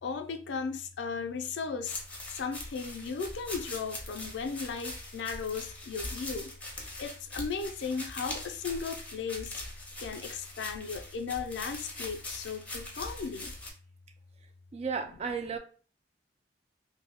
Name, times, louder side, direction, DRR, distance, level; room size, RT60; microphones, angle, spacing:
voice 1, 0.0-2.0 2.3-9.6 10.0-13.5, left 5 dB, 70° left, 0.4 m, -36 dB
sound 1, 1.8-13.7, left 1 dB, 10° left, 0.6 m, -42 dB
voice 2, 14.7-15.6, right 5 dB, 35° right, 0.3 m, -33 dB
2.6 x 2.1 x 3.5 m
head